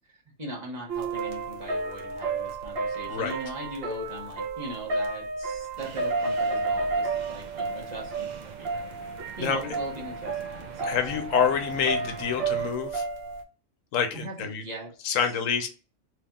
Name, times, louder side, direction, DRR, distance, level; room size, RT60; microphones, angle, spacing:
voice 1, 0.4-8.9 9.4-11.3 14.1-15.3, right 1 dB, 35° right, -3 dB, 1.1 m, -40 dB
sound 1, 0.9-13.4, right 3 dB, 55° right, 0.8 m, -31 dB
sound 2, 5.8-12.7, right 6 dB, 85° right, 0.4 m, -45 dB
voice 2, 10.9-13.0 13.9-14.6 15.0-15.7, left 7 dB, 90° left, 7 dB, 1.0 m, -27 dB
3.0 x 2.8 x 3.4 m, 0.37 s
omnidirectional pair, 1.3 m